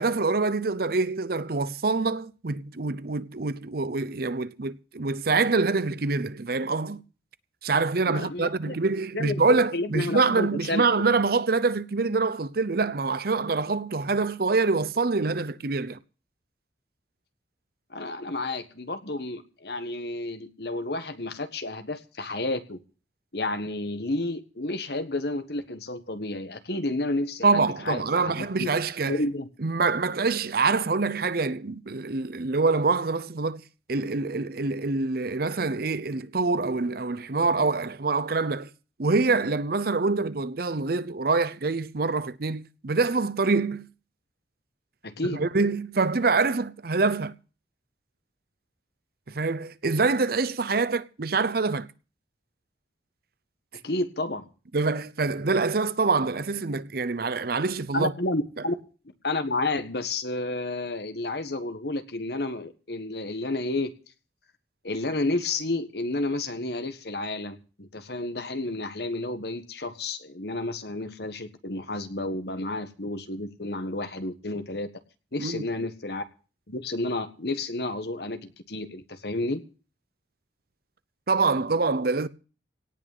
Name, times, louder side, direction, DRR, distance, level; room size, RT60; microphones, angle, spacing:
voice 1, 0.0-7.0 7.6-16.0 27.4-29.2 29.6-33.6 33.9-38.7 39.0-43.9 45.2-47.3 49.3-51.9 54.7-58.1 75.4-75.7 81.3-82.3, right 3 dB, 55° right, 0.7 m, -25 dB
voice 2, 8.1-8.7 9.1-10.8 17.9-22.8 23.3-28.7 29.0-29.5 45.0-45.4 53.8-54.5 57.9-58.7 59.2-63.9 64.8-74.9 75.3-76.2 76.7-79.6, left 2 dB, 60° left, 1.6 m, -31 dB
18.0 x 6.2 x 9.2 m
head